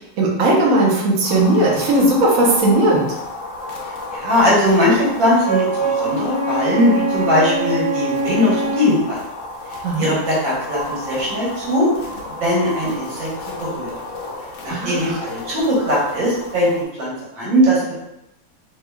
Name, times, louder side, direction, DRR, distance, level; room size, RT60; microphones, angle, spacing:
voice 1, 0.2-3.1 9.8-10.1 14.7-15.2, right 1 dB, 55° right, -3 dB, 1.1 m, -17 dB
sound 1, 1.2-16.8, left 2 dB, 75° left, 0.7 m, -32 dB
voice 2, 4.1-9.2 10.0-11.9 12.4-13.9 14.6-16.7 17.0-18.0, left 1 dB, 85° right, -6 dB, 2.0 m, -19 dB
Wind instrument woodwind instrument, 5.4-9.0, right 2 dB, 20° right, 0.9 m, -23 dB
3.5 x 3.2 x 2.2 m, 0.87 s
omnidirectional pair, 2.0 m